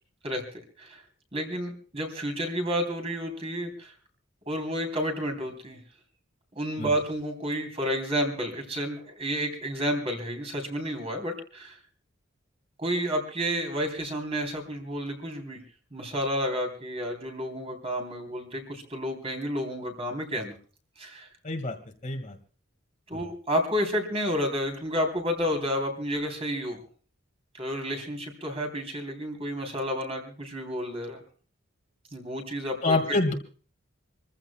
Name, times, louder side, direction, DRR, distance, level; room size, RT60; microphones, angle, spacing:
voice 1, 0.2-1.0 1.3-3.9 4.5-5.8 6.5-11.8 12.8-15.6 15.9-20.5 21.0-21.3 23.1-26.8 27.5-31.2 32.1-33.3, equal, 30° right, 3 dB, 3.3 m, -31 dB
voice 2, 21.4-21.8 22.0-22.4 32.8-33.3, left 2 dB, 35° left, 5 dB, 1.7 m, -26 dB
27.5 x 15.0 x 2.2 m, 0.40 s
head